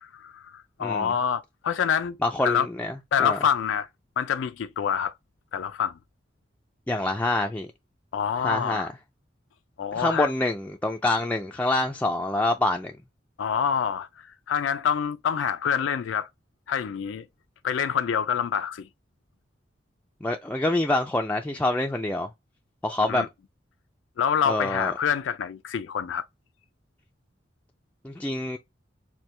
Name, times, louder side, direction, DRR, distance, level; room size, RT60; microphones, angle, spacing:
voice 1, 0.0-2.7 3.1-3.9 4.2-5.1 5.5-6.0 8.1-8.9 9.8-10.3 13.4-16.3 16.7-17.2 17.6-18.9 23.1-23.3 24.2-26.2, left 7 dB, 90° left, 0.4 m, -26 dB
voice 2, 0.8-1.1 2.2-2.9 3.2-3.4 6.9-7.7 8.4-8.9 10.0-12.9 20.2-22.3 22.8-23.3 24.5-24.9 28.0-28.6, left 2 dB, 10° left, 0.3 m, -26 dB
4.4 x 2.2 x 3.2 m
head